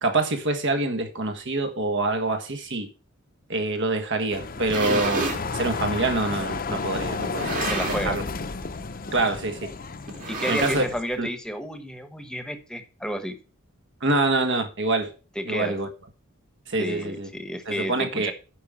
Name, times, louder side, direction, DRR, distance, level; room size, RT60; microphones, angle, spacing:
voice 1, 0.0-2.9 3.5-5.3 5.5-8.2 9.1-9.7 10.5-10.8 11.2-11.3 14.0-15.1 15.4-15.9 16.7-17.3 17.7-18.3, right 2 dB, 55° right, 1.6 m, -26 dB
sound 1, 4.3-11.0, left 4 dB, 40° left, 0.7 m, -32 dB
sound 2, 4.4-5.5 6.2-6.3 7.2-8.2 8.5-8.8 9.1-9.2 10.1-11.2, right 3 dB, 40° right, 2.3 m, -30 dB
voice 2, 7.7-8.2 10.3-13.3 15.3-15.7 16.8-18.3, equal, 5° left, 1.2 m, -31 dB
9.5 x 5.2 x 7.4 m
head